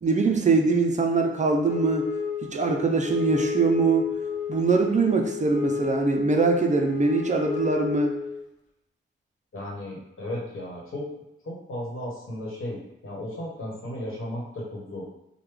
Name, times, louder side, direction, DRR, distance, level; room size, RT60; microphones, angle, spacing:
voice 1, 0.0-2.1 2.5-4.1 4.5-8.2, right 3 dB, 35° right, 3 dB, 0.4 m, -22 dB
Wind instrument woodwind instrument, 1.7-8.5, left 7 dB, 40° left, 0.6 m, -32 dB
voice 2, 9.5-11.1 11.4-15.0, left 1 dB, 80° left, -4 dB, 1.0 m, -35 dB
3.2 x 2.1 x 3.3 m, 0.89 s
wide cardioid pair, 90°, 21 cm